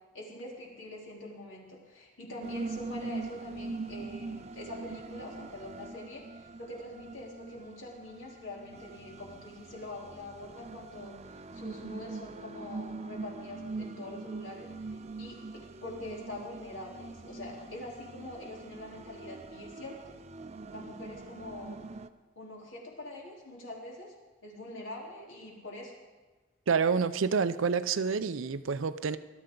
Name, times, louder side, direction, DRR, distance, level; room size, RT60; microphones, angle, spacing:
voice 1, 0.1-20.2 20.7-21.8 22.4-24.2 24.4-25.9, left 1 dB, 75° left, 3.7 m, -44 dB
sound 1, 2.4-22.1, right 3 dB, 30° right, 0.5 m, -43 dB
voice 2, 26.7-29.2, right 5 dB, 80° right, 0.5 m, -28 dB
20.0 x 12.5 x 3.9 m
head